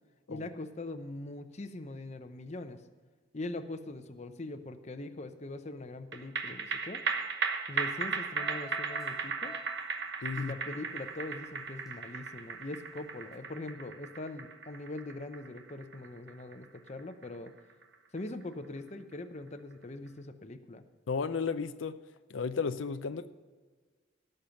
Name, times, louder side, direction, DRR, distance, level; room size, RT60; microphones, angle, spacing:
voice 1, 0.3-2.8 3.3-7.0 7.7-9.5 10.3-17.5 18.1-20.8, left 2 dB, 35° left, 8 dB, 0.7 m, -42 dB
sound 1, 6.1-18.8 19.1-19.2, right 5 dB, 65° right, 1.1 m, -37 dB
sound 2, 8.2-12.1 12.4-12.9 13.3-13.4, left 4 dB, ahead, 3.2 m, -53 dB
voice 2, 10.2-10.5 21.1-22.0 22.3-23.3, left 5 dB, 80° left, 11 dB, 0.5 m, -33 dB
17.0 x 6.7 x 5.8 m, 1.5 s
head